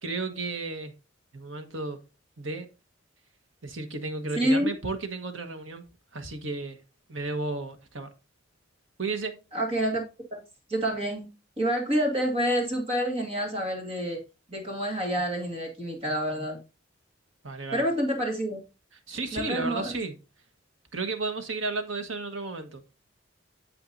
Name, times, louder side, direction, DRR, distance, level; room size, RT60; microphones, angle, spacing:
voice 1, 0.0-0.9 1.3-2.0 2.4-2.7 3.6-5.8 6.1-6.8 7.1-8.1 9.0-9.4 17.4-17.8 19.1-20.2 20.9-22.8, right 3 dB, 80° right, 1.3 m, -33 dB
voice 2, 4.4-4.7 9.5-10.0 10.3-10.4 10.7-11.3 11.6-14.2 14.5-16.6 17.7-18.6 19.3-19.9, equal, 30° right, 1.9 m, -27 dB
8.8 x 7.7 x 2.7 m
head